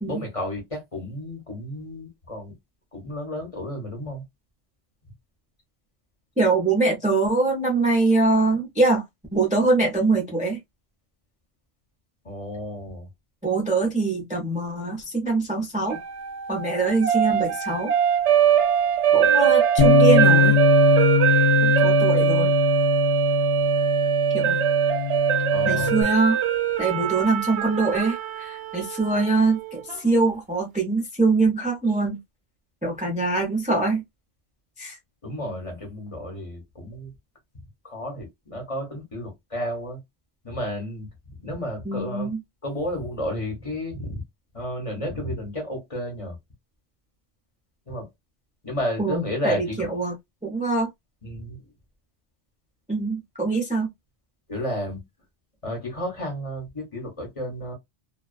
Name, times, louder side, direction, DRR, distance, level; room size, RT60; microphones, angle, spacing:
voice 1, 0.1-2.5 2.9-4.2 12.2-13.1 25.5-25.9 35.2-37.1 37.8-40.0 40.4-41.1 41.4-42.3 42.6-44.2 44.5-46.4 47.9-48.1 48.6-49.9 51.2-51.6 54.5-55.0 55.6-57.7, left 1 dB, 30° left, 0.9 m, -32 dB
voice 2, 6.4-9.0 9.3-10.6 13.4-16.0 16.5-17.9 19.1-20.6 21.6-22.5 24.3-24.6 25.7-26.4 26.8-32.2 32.8-34.0 34.8-35.0 41.8-42.4 49.0-50.1 50.4-50.9 52.9-53.9, right 3 dB, 10° right, 0.5 m, -23 dB
sound 1, 15.9-30.0, right 10 dB, 85° right, 0.9 m, -22 dB
Bass guitar, 19.8-26.0, left 10 dB, 55° left, 0.5 m, -22 dB
2.3 x 2.3 x 2.3 m
omnidirectional pair, 1.2 m